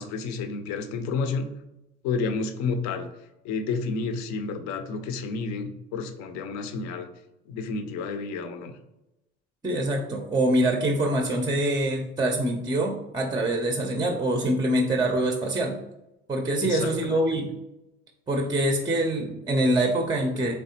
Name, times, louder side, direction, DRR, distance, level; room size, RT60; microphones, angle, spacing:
voice 1, 0.0-1.5 2.0-3.1 3.4-7.1 7.5-8.7 16.6-17.2, left 4 dB, 55° left, 7 dB, 0.6 m, -30 dB
voice 2, 9.6-15.8 16.3-17.5 18.3-20.5, right 1 dB, 10° right, 2 dB, 0.5 m, -25 dB
3.4 x 3.3 x 2.8 m, 0.90 s
hypercardioid pair, 70°, 33 cm